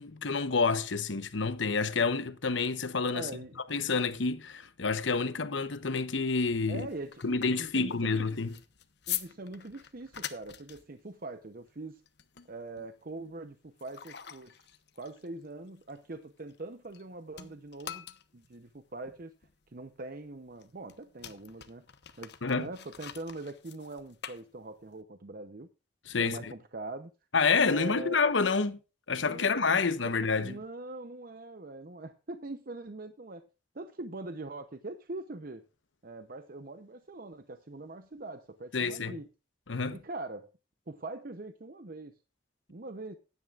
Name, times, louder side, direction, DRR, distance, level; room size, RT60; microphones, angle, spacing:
voice 1, 0.0-3.3 3.7-6.9 7.2-8.6 22.4-22.7 26.1-26.5 27.3-28.8 29.1-30.6 38.7-39.2 39.7-40.0, left 4 dB, 80° left, 1.0 m, -28 dB
voice 2, 3.1-3.5 6.7-8.2 9.1-12.0 12.5-14.6 15.0-18.0 18.3-19.3 19.7-21.8 22.2-25.7 26.2-27.1 27.7-28.2 29.2-30.1 30.4-33.5 33.7-35.6 36.0-39.3 39.9-40.5 40.9-42.1 42.7-43.1, right 2 dB, 50° right, 0.8 m, -42 dB
sound 1, 6.5-17.0 17.3-25.0, left 11 dB, 65° left, 1.0 m, -45 dB
15.5 x 11.0 x 2.5 m
head